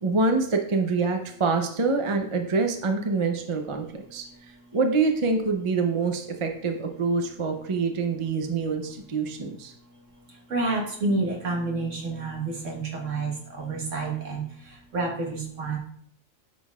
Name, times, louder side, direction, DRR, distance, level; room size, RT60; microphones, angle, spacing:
voice 1, 0.0-4.2 4.7-9.7, right 4 dB, 30° right, 4 dB, 0.7 m, -25 dB
voice 2, 10.5-15.8, right 3 dB, 65° right, -1 dB, 1.8 m, -29 dB
9.2 x 6.2 x 2.4 m, 0.64 s
omnidirectional pair, 1.4 m